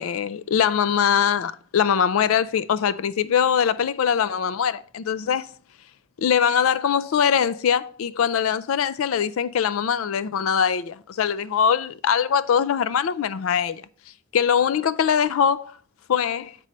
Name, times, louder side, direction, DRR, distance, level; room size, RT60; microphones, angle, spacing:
voice 1, 0.0-5.5 6.2-13.8 14.3-15.7 16.1-16.6, left 7 dB, 90° left, 0.4 m, -22 dB
7.5 x 5.2 x 4.1 m
head